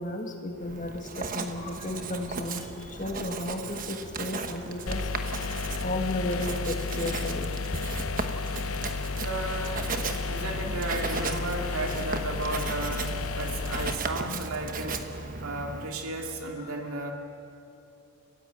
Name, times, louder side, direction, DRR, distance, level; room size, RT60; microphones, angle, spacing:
voice 1, 0.0-5.1 5.8-7.5 16.6-16.7, left 1 dB, 35° left, 4 dB, 1.9 m, -34 dB
Writing, 0.6-16.0, right 3 dB, 40° right, 1.2 m, -36 dB
sound 1, 4.9-14.0, left 4 dB, 75° left, 0.9 m, -32 dB
Bowed string instrument, 8.9-12.1, left 3 dB, 5° left, 0.7 m, -45 dB
voice 2, 9.2-9.9 10.3-15.1 15.4-17.1, right 2 dB, 80° right, 2 dB, 2.6 m, -34 dB
29.5 x 16.0 x 7.8 m, 2.9 s
head